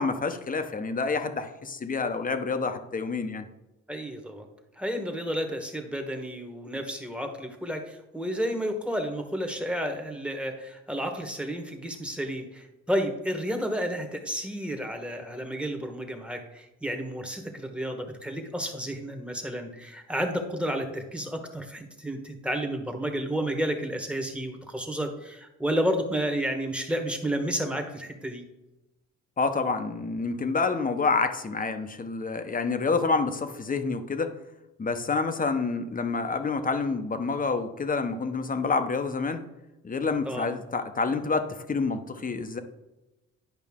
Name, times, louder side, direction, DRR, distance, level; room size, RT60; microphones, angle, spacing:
voice 1, 0.0-3.4 29.4-34.3 34.8-39.4 39.8-42.6, left 4 dB, 30° left, 8 dB, 0.9 m, -28 dB
voice 2, 3.9-4.5 4.8-28.4 40.2-40.5, equal, 5° right, 4 dB, 1.3 m, -31 dB
10.5 x 5.2 x 3.7 m, 0.99 s
cardioid pair, 90°, 30 cm